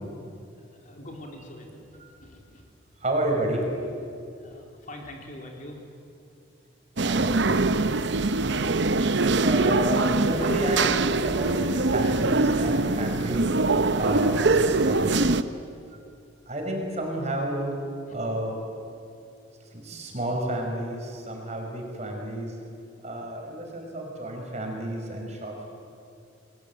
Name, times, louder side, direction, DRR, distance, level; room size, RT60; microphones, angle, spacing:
voice 1, 0.6-2.6 4.4-5.8 9.8-10.0, left 1 dB, 40° left, 1 dB, 3.7 m, -44 dB
voice 2, 3.0-3.7 7.0-8.0 9.4-13.5 14.0-15.4 15.9-16.0 16.5-17.8 18.1-18.6 19.7-22.6 23.0-25.7, right 1 dB, 35° right, 1 dB, 5.2 m, -31 dB
sound 1, 7.0-15.4, right 3 dB, 60° right, 0.8 m, -23 dB
30.0 x 21.5 x 8.7 m, 2.5 s
head